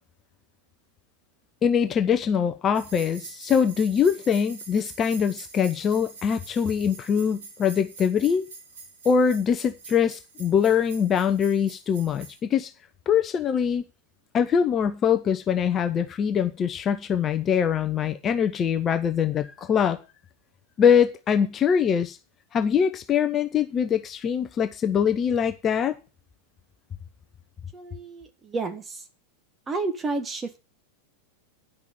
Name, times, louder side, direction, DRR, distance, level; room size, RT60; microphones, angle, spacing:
voice 1, 1.6-8.5 9.0-12.7 13.1-13.8 14.3-20.0 20.8-22.2 22.5-25.9, left 7 dB, 25° left, 0.8 m, -23 dB
sound 1, 2.7-12.4, right 4 dB, 60° right, 2.7 m, -45 dB
voice 2, 27.7-29.0 29.7-30.6, right 3 dB, 20° right, 1.6 m, -31 dB
10.0 x 6.1 x 7.3 m
figure-of-eight pair, 90°, 0 cm